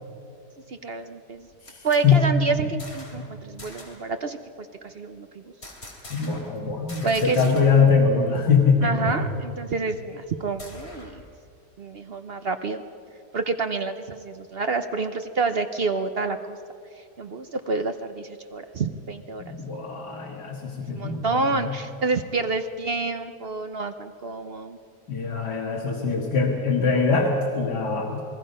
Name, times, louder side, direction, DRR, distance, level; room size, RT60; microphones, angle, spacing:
voice 1, 0.7-1.5 1.8-5.4 7.0-7.6 8.8-11.2 11.8-12.8 13.3-16.6 16.9-19.4 20.9-24.8, right 4 dB, 50° right, 8 dB, 0.8 m, -28 dB
sound 1, 1.3-3.3 3.6-4.1 5.6-6.6 6.9-8.0 8.2-8.3 8.7-11.3, left 1 dB, 40° left, 3.3 m, -44 dB
voice 2, 1.7-2.2 6.1-9.1 19.4-21.7 25.1-28.2, left 5 dB, 80° left, 0 dB, 2.5 m, -22 dB
28.0 x 20.5 x 5.5 m, 2.5 s
omnidirectional pair, 1.7 m